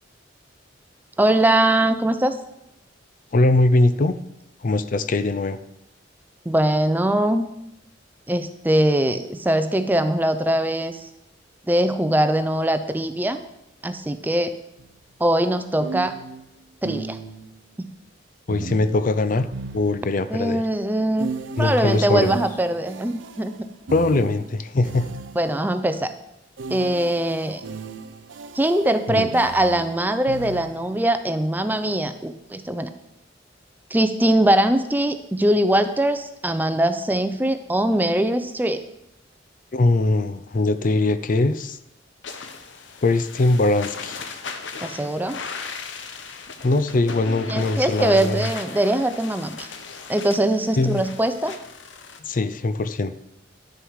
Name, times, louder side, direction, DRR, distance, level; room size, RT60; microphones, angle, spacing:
voice 1, 1.2-2.4 6.5-7.5 8.3-11.0 11.7-13.4 13.8-14.5 15.2-16.2 16.8-17.2 17.8-17.9 20.3-21.3 21.6-23.5 25.4-26.1 26.7-27.6 28.5-32.9 33.9-38.8 44.8-45.4 47.5-49.7 50.1-51.6, right 1 dB, 10° right, 10 dB, 0.5 m, -21 dB
voice 2, 3.3-4.1 4.6-5.6 18.5-19.5 19.7-20.6 21.6-22.3 23.9-25.1 29.1-29.3 39.7-41.8 43.0-44.2 46.6-48.5 50.8-51.0 52.2-53.1, left 2 dB, 45° left, 12 dB, 0.5 m, -21 dB
sound 1, 14.8-14.9 15.8-17.6 18.5-20.4 21.2-25.7 26.6-31.1, right 4 dB, 80° right, 0.5 m, -37 dB
sound 2, 42.2-52.2, left 4 dB, 80° left, 0.9 m, -37 dB
10.5 x 6.8 x 4.7 m, 0.84 s
head